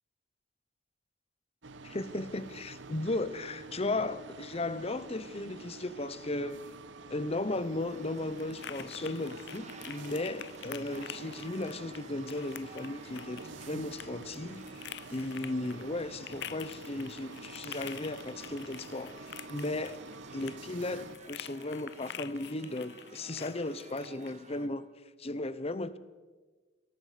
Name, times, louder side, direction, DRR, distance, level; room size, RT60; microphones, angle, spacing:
sound 1, 1.6-21.2, right 3 dB, 85° right, 1.0 m, -48 dB
voice 1, 1.8-6.7 7.1-20.0 20.3-24.9 25.2-26.0, left 2 dB, 35° left, 0.9 m, -36 dB
sound 2, 7.2-24.3, left 10 dB, 65° left, 0.5 m, -48 dB
sound 3, 7.9-24.7, right 3 dB, 40° right, 2.0 m, -53 dB
27.0 x 19.5 x 5.1 m
head